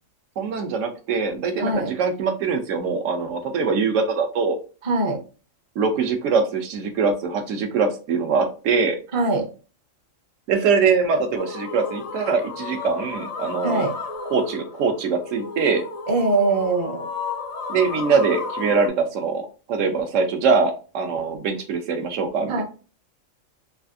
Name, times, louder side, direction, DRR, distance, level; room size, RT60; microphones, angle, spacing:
voice 1, 0.4-4.6 5.8-9.0 10.5-13.8 14.3-15.8 17.7-22.6, right 5 dB, 75° right, 5 dB, 1.0 m, -23 dB
voice 2, 1.6-1.9 4.8-5.2 9.1-9.5 13.6-13.9 16.1-17.1 22.5-22.6, right 2 dB, 35° right, 2 dB, 0.5 m, -22 dB
sound 1, 11.4-18.9, left 4 dB, 70° left, 0.3 m, -33 dB
3.3 x 2.4 x 2.5 m, 0.35 s
omnidirectional pair, 1.4 m